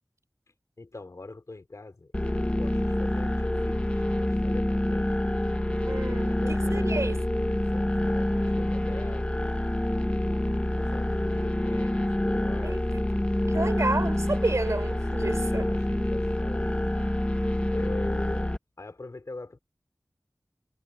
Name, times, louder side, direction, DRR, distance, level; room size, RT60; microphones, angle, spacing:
voice 1, 0.8-5.1 6.0-6.9 7.7-9.4 9.8-12.9 15.3-17.1 17.7-19.6, left 2 dB, 75° left, 3.9 m, -43 dB
sound 1, 2.1-18.6, left 1 dB, 20° left, 1.1 m, -27 dB
voice 2, 5.9-7.2 12.6-12.8 13.5-15.7, right 2 dB, 70° right, 3.9 m, -30 dB
wide cardioid pair, 50°, 5 cm